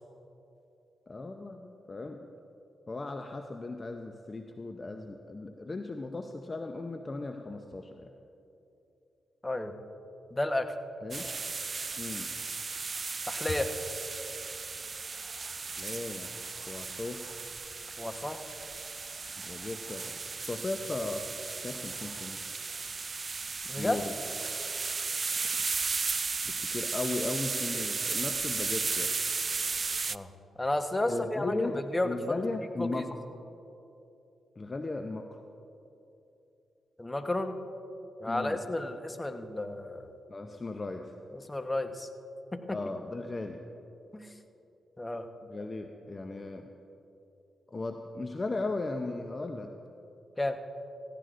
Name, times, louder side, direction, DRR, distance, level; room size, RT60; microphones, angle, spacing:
voice 1, 1.1-2.3 2.9-8.1 11.0-11.2 12.0-12.3 13.5-13.6 15.8-16.3 16.7-17.2 19.4-20.1 20.5-21.3 21.6-22.4 23.8-24.1 26.4-29.2 31.1-33.2 34.6-35.4 38.3-38.6 40.3-41.1 42.7-43.6 45.4-46.7 47.7-49.7, left 2 dB, 35° left, 5 dB, 0.6 m, -37 dB
voice 2, 10.3-10.7 13.3-13.7 18.0-18.4 23.7-24.0 30.1-30.3 30.6-32.4 32.8-33.0 37.0-37.5 38.2-40.1 41.3-42.1 42.5-42.8 44.1-44.3 45.0-45.3 50.4-50.6, left 1 dB, 20° left, 7 dB, 1.0 m, -32 dB
sound 1, 11.1-30.2, right 4 dB, 45° right, 0.3 m, -35 dB
18.0 x 15.0 x 2.5 m, 2.9 s
supercardioid pair, 50°, 0 cm